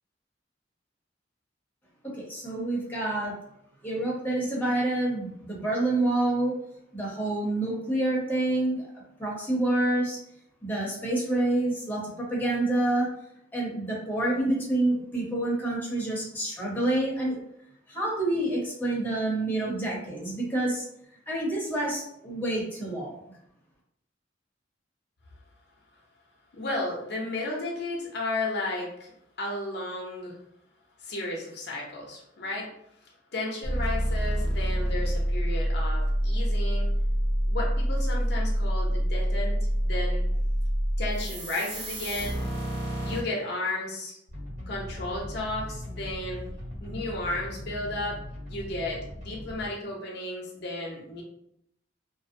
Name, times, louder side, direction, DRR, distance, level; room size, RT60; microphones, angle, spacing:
voice 1, 2.0-3.3 3.8-6.5 6.9-8.9 9.2-10.2 10.6-13.1 13.5-17.4 17.9-20.8 21.3-23.2, right 2 dB, 10° left, -4 dB, 0.7 m, -27 dB
voice 2, 26.5-29.1 29.4-30.4 31.0-32.7 33.3-36.9 37.5-39.6 39.8-40.2 41.0-42.4 43.0-44.2 44.7-46.4 46.8-48.2 48.5-51.2, left 2 dB, 65° left, -2 dB, 0.6 m, -33 dB
sound 1, 33.6-43.2, equal, 70° right, 0.6 m, -27 dB
sound 2, 44.3-49.7, left 1 dB, 45° right, 1.5 m, -39 dB
2.6 x 2.1 x 2.5 m, 0.75 s
head